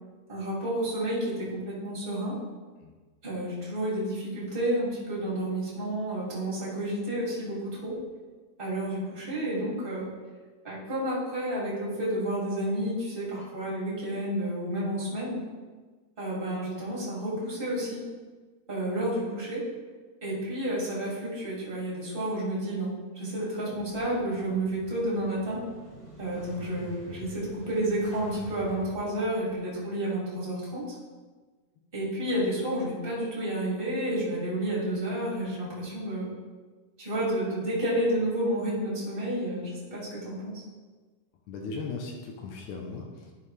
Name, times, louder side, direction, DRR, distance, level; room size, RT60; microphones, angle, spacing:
voice 1, 0.3-2.4 3.2-7.9 8.6-10.1 10.6-15.4 16.2-18.0 18.7-19.6 20.2-25.6 26.2-30.8 31.9-36.3 37.0-40.6, right 1 dB, 20° right, -7 dB, 1.5 m, -30 dB
Motorcycle / Engine starting, 23.9-29.5, right 1 dB, 25° left, 2.4 m, -49 dB
voice 2, 41.5-43.3, left 4 dB, 90° left, 1 dB, 1.7 m, -37 dB
11.5 x 5.6 x 3.3 m, 1.4 s
omnidirectional pair, 4.6 m